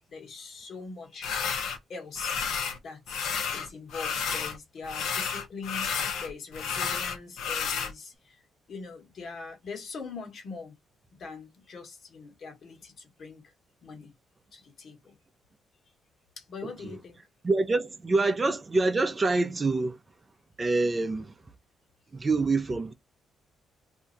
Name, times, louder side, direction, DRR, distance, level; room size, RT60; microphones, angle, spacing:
voice 1, 0.1-1.3 1.9-8.4 8.7-10.7 11.1-13.5 13.8-14.1 14.5-15.1 16.4-17.2 18.2-18.3, left 4 dB, 55° left, 1.3 m, -42 dB
sound 1, 1.2-1.8 2.2-2.8 3.1-4.6 4.8-7.9, left 6 dB, 85° left, 0.8 m, -31 dB
voice 2, 17.4-20.0 20.6-21.3 22.1-22.9, right 3 dB, 30° right, 0.6 m, -26 dB
2.7 x 2.3 x 3.9 m
cardioid pair, 90°, 0 cm